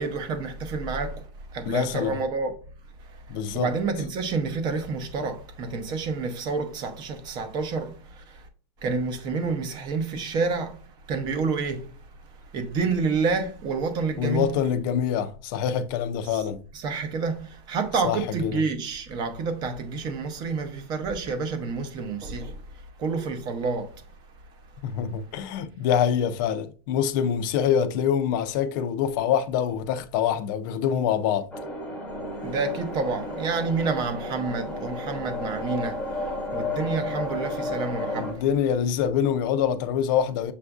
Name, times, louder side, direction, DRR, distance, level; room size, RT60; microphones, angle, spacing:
voice 1, 0.0-2.6 3.1-8.5 8.8-11.9 12.5-14.5 16.3-16.4 16.7-22.6 23.0-24.0 32.4-38.4, right 4 dB, 30° right, 0.6 m, -29 dB
voice 2, 1.7-2.2 3.3-3.7 14.2-16.6 18.0-18.6 24.8-31.5 38.1-40.5, left 8 dB, 45° left, 0.4 m, -25 dB
sound 1, 31.5-38.3, left 2 dB, 10° left, 0.8 m, -32 dB
6.8 x 2.5 x 2.3 m
supercardioid pair, 155°, 15 cm